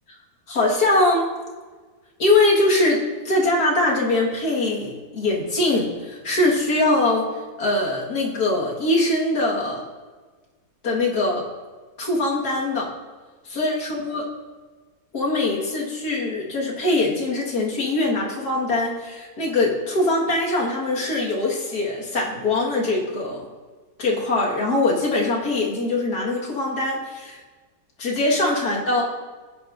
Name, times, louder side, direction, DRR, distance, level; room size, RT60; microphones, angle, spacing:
voice 1, 0.5-1.3 2.2-7.3 7.6-9.8 10.8-11.4 12.0-12.9 13.5-14.3 15.1-23.4 24.0-27.4 28.0-29.0, left 2 dB, 80° left, -3 dB, 2.3 m, -22 dB
14.5 x 9.5 x 2.6 m, 1.4 s
omnidirectional pair, 1.6 m